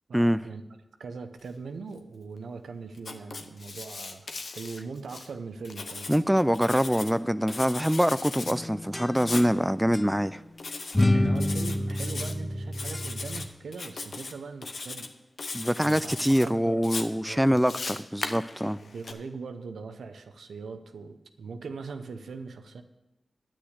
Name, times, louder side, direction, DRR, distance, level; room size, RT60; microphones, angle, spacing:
voice 1, 0.1-0.6 1.0-6.1 11.1-15.1 15.8-16.9 17.2-17.6 18.8-22.8, right 4 dB, 90° right, 8 dB, 0.7 m, -41 dB
Writing, 3.0-5.3 5.7-7.1 7.5-8.6 9.2-9.5 10.6-11.0 11.4-12.3 12.7-13.5 13.7-14.3 14.6-15.1 15.4-16.5 16.8-19.1, left 3 dB, 70° left, 0.9 m, -38 dB
voice 2, 6.1-10.4 15.5-18.8, equal, 5° right, 15 dB, 0.4 m, -24 dB
sound 1, 8.4-9.6 9.9-10.1 10.9-13.5, left 1 dB, 25° left, 0.7 m, -28 dB
10.0 x 6.2 x 8.0 m, 0.98 s
cardioid pair, 40°, 0 cm